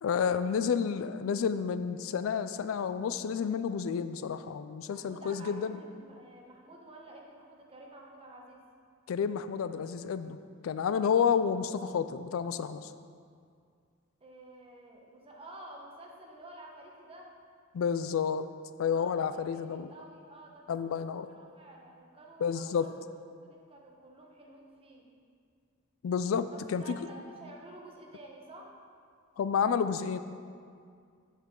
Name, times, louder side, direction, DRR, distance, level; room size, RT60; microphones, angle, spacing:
voice 1, 0.0-5.8 9.1-10.4 10.6-12.9 17.7-18.5 18.8-19.9 20.7-21.3 22.4-22.9 26.0-26.8 29.4-30.2, left 7 dB, 75° left, 12 dB, 0.3 m, -30 dB
voice 2, 4.9-8.6 14.2-17.3 18.9-20.8 21.3-22.9 23.4-25.1 26.5-28.7, right 1 dB, 30° right, -1 dB, 1.1 m, -51 dB
8.1 x 7.2 x 3.8 m, 2.2 s
head